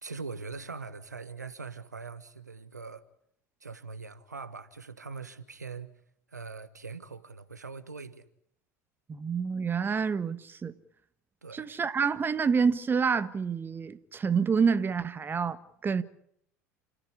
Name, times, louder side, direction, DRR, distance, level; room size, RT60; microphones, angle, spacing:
voice 1, 0.0-3.0 3.6-5.9 6.3-8.2 11.4-11.6, right 4 dB, 85° right, 1.2 m, -42 dB
voice 2, 9.1-10.7 11.5-16.0, right 6 dB, 25° right, 1.5 m, -28 dB
29.0 x 14.5 x 9.9 m
figure-of-eight pair, 75°, 9 cm